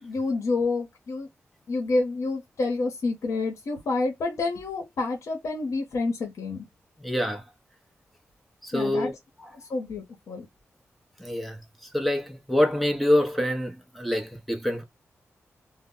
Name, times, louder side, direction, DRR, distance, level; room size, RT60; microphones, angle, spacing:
voice 1, 0.0-1.3 1.7-6.7 8.7-9.1 9.5-10.5, left 3 dB, 75° left, 0.8 m, -28 dB
voice 2, 7.0-7.4 8.6-9.1 11.2-11.6 11.9-14.8, left 1 dB, ahead, 0.6 m, -25 dB
2.0 x 2.0 x 3.6 m
cardioid pair, 90°, 5 cm